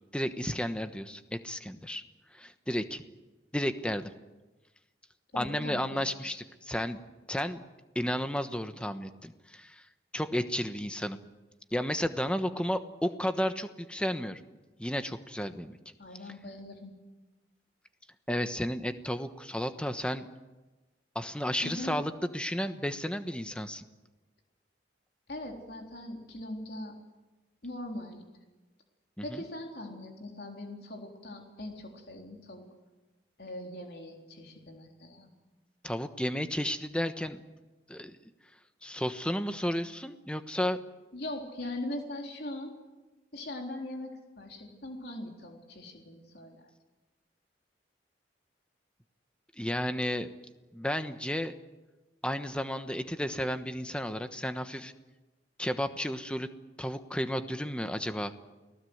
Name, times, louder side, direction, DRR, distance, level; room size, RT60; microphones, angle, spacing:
voice 1, 0.1-2.0 2.3-3.0 3.5-4.1 5.3-7.0 7.3-7.6 7.9-9.9 10.1-11.2 11.7-14.4 14.8-15.8 18.3-20.2 21.1-23.8 29.2-29.4 35.8-37.4 37.9-38.2 38.8-40.8 49.6-50.3 50.7-51.5 52.2-54.9 55.6-56.5 56.8-58.3, equal, 5° left, 9 dB, 1.1 m, -32 dB
voice 2, 5.3-6.4 16.0-16.9 21.6-22.0 25.3-27.0 27.6-28.2 29.2-32.7 33.4-35.3 41.1-42.8 43.3-46.6, left 1 dB, 60° left, 2 dB, 3.8 m, -41 dB
29.5 x 18.5 x 8.0 m, 1.2 s
head